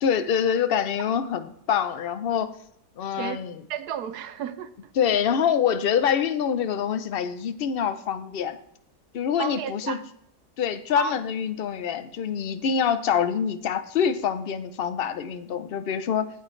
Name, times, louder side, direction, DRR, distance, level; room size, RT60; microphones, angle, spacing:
voice 1, 0.0-2.5 3.0-3.6 5.0-8.6 9.1-10.0 10.6-16.3, left 8 dB, 75° left, 0.5 m, -25 dB
voice 2, 3.7-4.7 9.4-10.0 10.9-11.2, right 9 dB, 75° right, 1.3 m, -32 dB
16.5 x 5.7 x 3.2 m
omnidirectional pair, 1.7 m